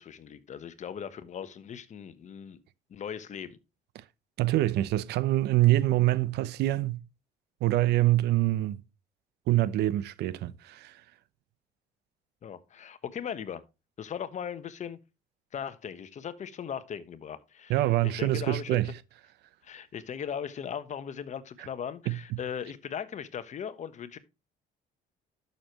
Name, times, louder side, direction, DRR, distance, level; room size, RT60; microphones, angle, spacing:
voice 1, 0.0-2.6 2.9-3.6 12.4-13.6 14.0-15.0 15.5-18.8 19.6-24.2, left 8 dB, 45° left, 1.2 m, -38 dB
voice 2, 4.4-7.0 7.6-8.8 9.5-11.0 17.7-18.9 22.1-22.2, right 16 dB, 80° right, 0.8 m, -25 dB
11.5 x 6.8 x 3.0 m
cardioid pair, 110°, 17 cm